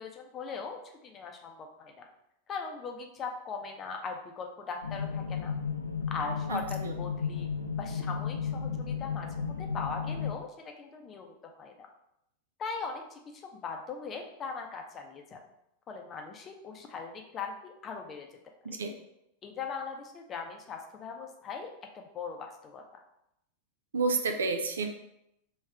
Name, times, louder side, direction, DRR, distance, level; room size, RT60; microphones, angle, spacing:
voice 1, 0.0-1.9 2.5-5.5 6.1-7.5 7.8-11.9 12.6-13.2 13.5-15.4 15.9-18.3 18.7-18.8 19.4-23.0, left 5 dB, 25° left, 3 dB, 0.7 m, -40 dB
sound 1, 4.8-10.4, left 6 dB, 75° left, 0.4 m, -34 dB
voice 2, 6.5-6.9 18.6-18.9 23.9-24.9, right 3 dB, 70° right, 5 dB, 0.5 m, -30 dB
3.5 x 3.1 x 4.3 m, 0.81 s
figure-of-eight pair, 90°, 0 cm